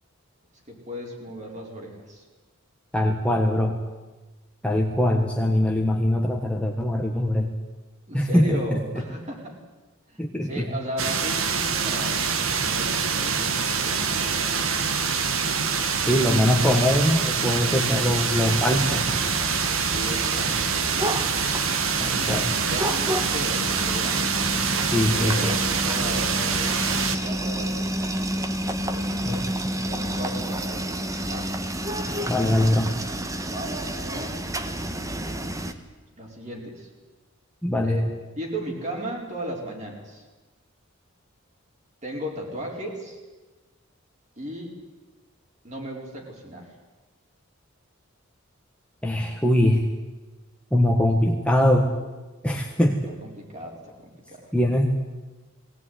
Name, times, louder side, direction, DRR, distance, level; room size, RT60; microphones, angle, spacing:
voice 1, 0.7-2.2 8.1-9.6 10.1-12.2 12.5-14.8 15.9-16.3 19.9-20.9 21.8-24.2 25.1-28.0 28.8-31.5 33.5-34.4 36.2-36.9 37.8-38.0 38.3-40.2 42.0-43.2 44.4-44.8 45.6-46.7 53.1-54.5, equal, 35° right, 0 dB, 4.8 m, -36 dB
voice 2, 2.9-3.8 4.6-7.5 8.1-8.8 10.2-10.7 16.0-19.1 22.0-22.5 24.9-25.4 29.2-29.4 32.1-32.9 37.6-38.0 49.0-49.9 50.7-51.9 52.4-53.0 54.5-54.9, left 1 dB, 5° left, 1 dB, 1.5 m, -22 dB
sound 1, 11.0-27.2, right 5 dB, 85° right, 1.8 m, -25 dB
sound 2, 18.4-35.7, right 1 dB, 15° right, 1.2 m, -30 dB
21.0 x 18.0 x 9.7 m, 1.2 s
head